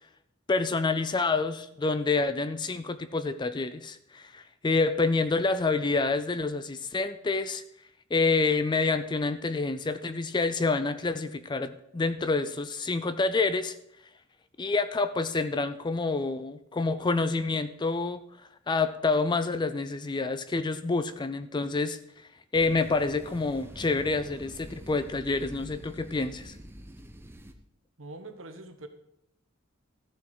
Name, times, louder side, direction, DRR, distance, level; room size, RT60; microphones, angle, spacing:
voice 1, 0.5-7.6 8.1-13.7 14.6-18.2 18.7-22.0 22.5-26.5, left 3 dB, 25° left, 12 dB, 0.4 m, -28 dB
sound 1, 22.5-27.5, equal, 10° right, 0.7 m, -46 dB
voice 2, 28.0-28.9, right 2 dB, 80° right, 8 dB, 1.2 m, -43 dB
13.5 x 6.9 x 4.9 m, 0.76 s
head